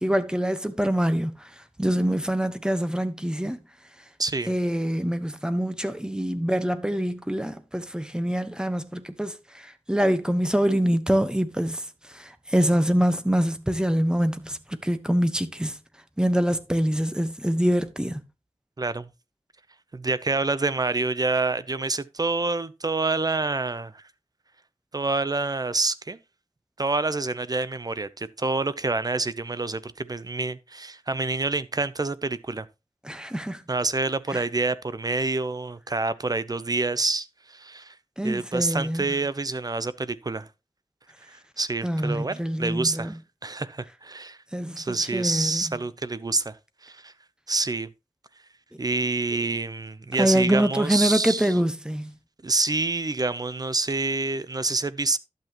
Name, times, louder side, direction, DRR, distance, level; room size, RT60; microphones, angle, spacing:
voice 1, 0.0-1.3 1.8-3.6 4.5-9.3 9.9-11.8 12.2-15.7 16.2-18.2 33.0-33.6 38.2-39.1 41.8-43.1 44.5-44.8 45.1-45.6 50.2-52.1, equal, 5° right, 1.1 m, -25 dB
voice 2, 4.2-4.5 18.8-19.1 19.9-24.0 24.9-26.2 26.8-32.7 33.7-37.9 38.2-40.5 41.3-43.2 43.4-44.4 44.8-46.6 46.8-47.1 47.5-47.9 48.8-51.6 52.4-55.2, right 3 dB, 35° right, 0.7 m, -27 dB
11.5 x 8.0 x 3.0 m
wide cardioid pair, 90°, 11 cm